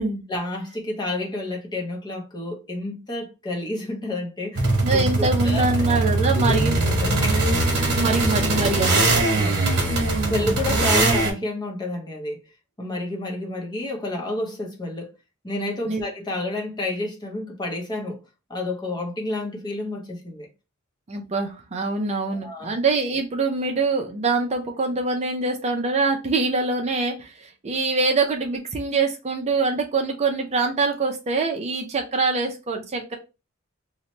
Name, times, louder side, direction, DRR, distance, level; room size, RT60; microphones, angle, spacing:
voice 1, 0.3-5.9 6.3-6.6 7.0-7.6 9.3-10.0 10.3-12.4 12.8-15.1 15.4-18.2 18.5-20.5 22.3-22.7, left 2 dB, 20° left, 0.7 m, -30 dB
sound 1, 4.6-11.3, right 2 dB, 50° right, 1.1 m, -21 dB
voice 2, 4.8-6.8 7.9-9.3 15.9-16.0 21.1-33.2, right 3 dB, 30° right, 0.4 m, -24 dB
2.7 x 2.1 x 2.9 m
head